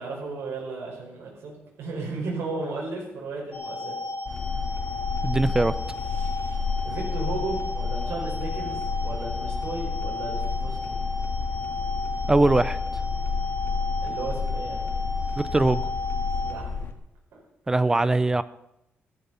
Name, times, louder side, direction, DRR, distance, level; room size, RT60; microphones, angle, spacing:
voice 1, 0.0-4.0 4.5-4.6 6.8-11.0 14.0-14.9 15.2-15.4 16.3-16.7 17.3-17.4, right 3 dB, 90° right, -2 dB, 5.4 m, -35 dB
sound 1, 3.5-16.5, left 2 dB, 40° left, 5.3 m, -34 dB
sound 2, 4.3-16.9, left 5 dB, 65° left, 1.7 m, -30 dB
voice 2, 5.2-5.7 12.3-12.8 15.4-15.8 17.7-18.4, right 2 dB, 15° right, 16 dB, 0.4 m, -21 dB
15.0 x 14.0 x 5.6 m, 0.84 s
wide cardioid pair, 175°, 4 cm